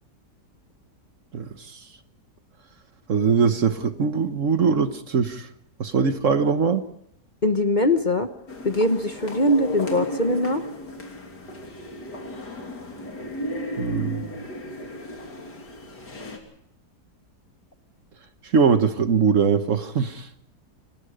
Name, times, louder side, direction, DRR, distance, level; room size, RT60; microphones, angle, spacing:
voice 1, 1.3-1.8 3.1-5.5 5.8-6.8 13.8-14.3 18.5-20.3, right 5 dB, 55° right, 10 dB, 1.4 m, -21 dB
voice 2, 7.4-8.3 8.6-10.6, left 1 dB, 30° left, 8 dB, 1.1 m, -22 dB
sound 1, 8.5-16.4, left 1 dB, 85° left, 3.8 m, -34 dB
29.0 x 18.5 x 5.1 m, 0.74 s
omnidirectional pair, 1.7 m